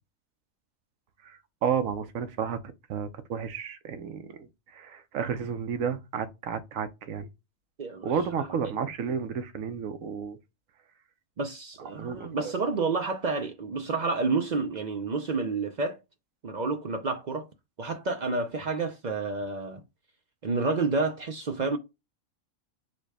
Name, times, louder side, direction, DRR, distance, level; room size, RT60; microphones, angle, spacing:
voice 1, 1.2-2.6 2.9-7.3 8.0-10.4 11.8-12.5, right 7 dB, 80° right, 1.1 m, -32 dB
voice 2, 7.8-8.1 11.4-16.0 16.4-17.5 17.8-19.8 20.4-21.8, right 3 dB, 50° right, 0.5 m, -29 dB
4.8 x 2.2 x 4.7 m
omnidirectional pair, 1.4 m